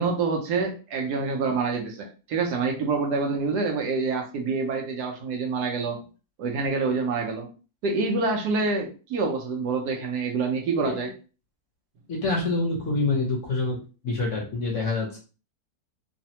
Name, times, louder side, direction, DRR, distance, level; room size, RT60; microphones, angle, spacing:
voice 1, 0.0-6.0 6.4-7.5 7.8-11.1, right 4 dB, 75° right, 2 dB, 1.2 m, -26 dB
voice 2, 12.1-13.8 14.0-15.2, left 3 dB, 55° left, -1 dB, 1.0 m, -26 dB
3.2 x 2.1 x 2.8 m, 0.34 s
omnidirectional pair, 1.8 m